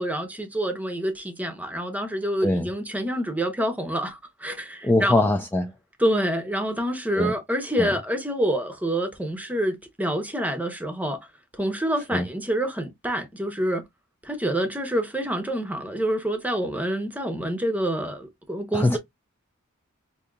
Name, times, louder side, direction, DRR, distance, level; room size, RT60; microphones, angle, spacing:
voice 1, 0.0-5.2 6.0-11.2 11.5-13.8 14.2-19.0, right 1 dB, 10° right, 0.8 m, -27 dB
voice 2, 4.8-5.7 7.2-7.3 7.8-7.9 12.1-12.2 18.7-19.0, left 2 dB, 10° left, 0.4 m, -22 dB
5.1 x 2.7 x 2.3 m
head